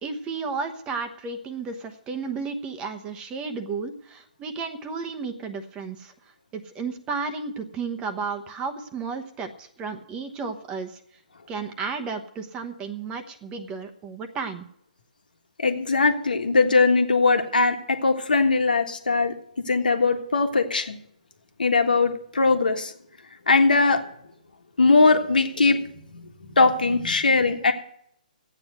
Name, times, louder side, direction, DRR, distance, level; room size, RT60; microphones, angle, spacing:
voice 1, 0.0-6.1 6.5-11.0 11.5-14.6, right 5 dB, 20° right, 7 dB, 1.0 m, -33 dB
voice 2, 15.6-21.0 21.6-22.9 23.5-24.0 24.8-25.8 26.1-26.3 26.5-27.7, left 3 dB, 80° left, 6 dB, 1.6 m, -20 dB
12.5 x 9.0 x 6.5 m, 0.70 s
hypercardioid pair, 140°, 5 cm